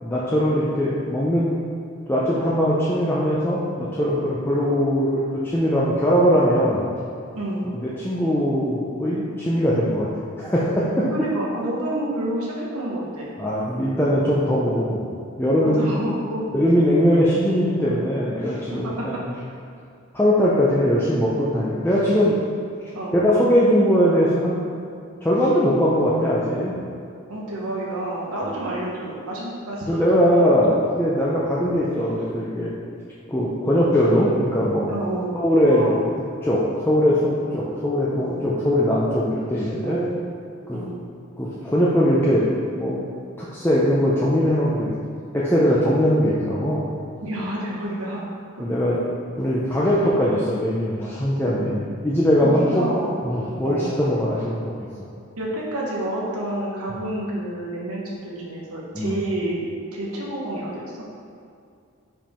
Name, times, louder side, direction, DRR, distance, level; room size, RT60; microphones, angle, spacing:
voice 1, 0.0-1.5 2.1-6.8 7.7-10.1 10.4-11.0 13.4-15.1 15.4-16.0 16.5-19.3 20.1-22.4 23.1-24.6 25.2-26.7 29.9-32.7 33.3-34.9 35.3-36.0 36.4-40.0 40.7-40.8 41.4-42.5 42.7-43.0 43.4-44.9 45.3-46.8 48.6-49.0 49.4-52.8 53.2-54.7 58.9-59.2, equal, 10° left, -7 dB, 0.5 m, -20 dB
voice 2, 7.3-7.6 11.1-13.3 15.6-16.4 17.1-17.2 18.7-18.9 22.9-23.2 27.3-30.5 30.8-31.3 34.9-35.3 35.6-35.9 37.3-37.5 38.2-38.5 39.8-40.2 40.7-40.9 47.2-48.2 48.6-48.7 52.4-53.1 53.6-53.9 55.4-59.6 59.9-60.9, right 1 dB, 90° right, -4 dB, 1.2 m, -29 dB
5.4 x 5.1 x 4.3 m, 2.4 s
head